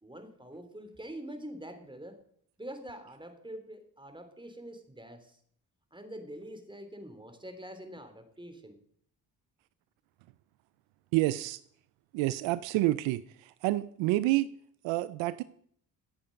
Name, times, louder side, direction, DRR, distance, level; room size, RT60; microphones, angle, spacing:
voice 1, 0.0-2.2 2.6-5.4 5.9-8.8, right 1 dB, 10° right, 8 dB, 3.1 m, -45 dB
voice 2, 11.1-11.6 12.1-14.5 14.8-15.4, right 17 dB, 85° right, 16 dB, 0.6 m, -28 dB
17.0 x 8.5 x 5.2 m, 0.64 s
hypercardioid pair, 50°, 44 cm